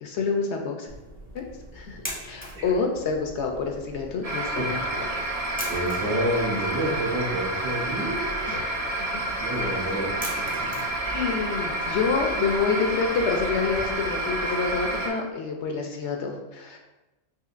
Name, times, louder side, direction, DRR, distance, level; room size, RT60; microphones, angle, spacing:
voice 1, 0.0-0.9 1.3-1.4 1.7-2.0 2.3-5.1 8.4-8.7 9.1-9.4 11.0-16.8, left 5 dB, 70° left, 2 dB, 0.8 m, -28 dB
sound 1, 0.9-13.9, equal, 10° left, 0.5 m, -43 dB
sound 2, 4.2-15.1, right 1 dB, 35° right, 0.7 m, -29 dB
voice 2, 5.7-8.3 9.4-10.1 10.3-10.7, right 1 dB, 70° right, -5 dB, 1.5 m, -28 dB
5.7 x 2.6 x 2.5 m, 1.0 s
omnidirectional pair, 1.4 m